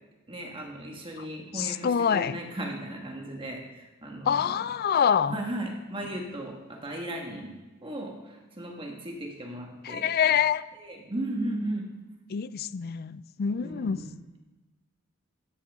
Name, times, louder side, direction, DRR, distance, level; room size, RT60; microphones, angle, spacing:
voice 1, 0.3-4.5 5.3-10.1 10.7-11.9 13.6-14.1, right 1 dB, 25° right, 1.7 m, -36 dB
voice 2, 1.5-2.4 4.3-5.4 9.8-10.6 12.3-14.0, left 7 dB, 45° left, 0.4 m, -26 dB
14.0 x 11.5 x 3.7 m
head